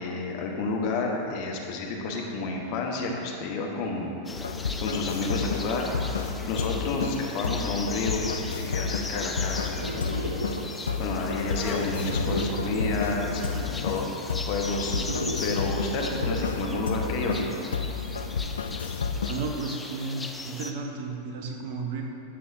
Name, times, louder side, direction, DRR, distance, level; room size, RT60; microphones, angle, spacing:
voice 1, 0.0-4.1 4.8-6.0 6.5-8.2 8.7-10.4 11.0-14.1 14.5-17.5, left 3 dB, 45° left, 0 dB, 1.1 m, -30 dB
sound 1, 4.2-20.7, left 3 dB, 10° left, 0.5 m, -39 dB
sound 2, 4.3-19.5, left 5 dB, 70° left, 0.3 m, -31 dB
sound 3, 9.8-18.2, right 1 dB, 85° right, 0.6 m, -35 dB
voice 2, 19.2-22.0, right 4 dB, 50° right, 2 dB, 0.9 m, -33 dB
11.5 x 8.3 x 2.6 m, 2.9 s
figure-of-eight pair, 90°, 0 cm